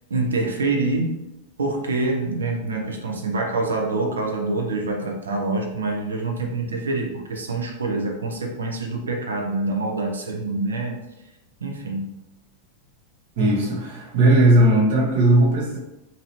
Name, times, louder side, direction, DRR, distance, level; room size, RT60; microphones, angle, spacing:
voice 1, 0.1-1.2 1.6-11.0 11.6-12.2, right 3 dB, 70° right, 1 dB, 0.6 m, -26 dB
voice 2, 13.4-15.8, right 1 dB, 50° right, -3 dB, 0.9 m, -17 dB
2.9 x 2.6 x 2.9 m, 0.95 s
figure-of-eight pair, 90°, 0 cm